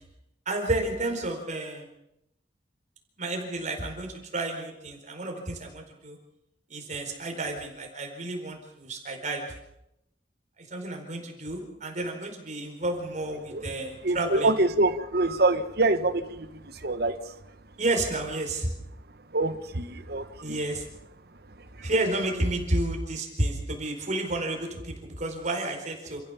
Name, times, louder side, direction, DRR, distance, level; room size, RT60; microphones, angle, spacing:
voice 1, 0.5-1.9 3.2-6.2 6.7-9.4 10.6-14.5 17.8-18.7 20.4-20.8 21.8-26.2, right 2 dB, 45° right, 3 dB, 4.6 m, -31 dB
voice 2, 14.0-17.3 19.3-20.6 21.8-21.9, right 2 dB, 65° right, 9 dB, 1.5 m, -26 dB
28.0 x 15.0 x 7.2 m, 0.82 s
head